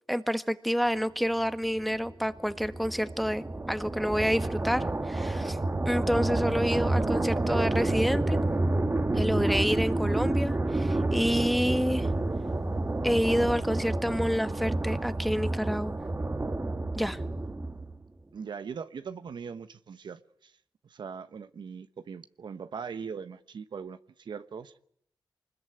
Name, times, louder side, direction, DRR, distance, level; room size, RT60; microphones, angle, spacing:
voice 1, 0.1-5.6 5.8-8.4 9.1-12.1 13.0-16.0 17.0-17.2, equal, ahead, 1.7 m, -28 dB
sound 1, 1.8-18.0, right 2 dB, 30° right, 1.7 m, -29 dB
voice 2, 18.3-20.5 20.8-24.7, right 6 dB, 75° right, 1.1 m, -40 dB
25.0 x 21.0 x 9.2 m
cardioid pair, 55°, 8 cm